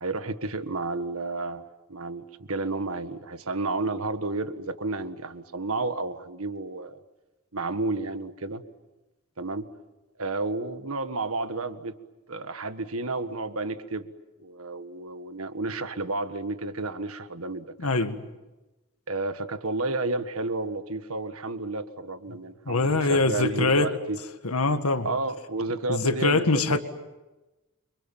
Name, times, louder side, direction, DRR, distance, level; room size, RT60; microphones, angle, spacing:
voice 1, 0.0-7.0 7.5-8.6 9.4-9.7 10.2-12.0 12.3-14.1 14.4-18.1 19.1-24.2 25.0-26.8, right 3 dB, 75° right, 1.7 m, -31 dB
voice 2, 17.8-18.2 22.7-23.9 24.4-25.1 25.9-26.8, left 3 dB, 85° left, 1.9 m, -23 dB
29.5 x 25.5 x 7.4 m
head